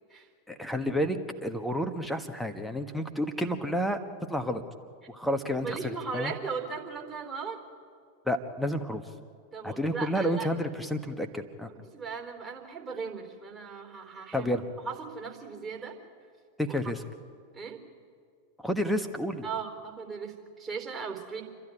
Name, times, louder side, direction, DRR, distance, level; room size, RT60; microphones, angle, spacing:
voice 1, 0.5-4.0 4.3-4.6 5.1-6.3 8.2-9.0 9.6-11.7 14.3-14.6 16.6-17.0 18.6-19.4, equal, ahead, 7 dB, 1.5 m, -30 dB
voice 2, 5.6-7.6 9.5-10.5 11.7-14.5 14.9-16.0 16.7-16.8 17.5-17.8 19.4-21.4, right 5 dB, 20° right, 1 dB, 4.0 m, -37 dB
28.5 x 12.0 x 9.6 m, 2.2 s
figure-of-eight pair, 90°, 0 cm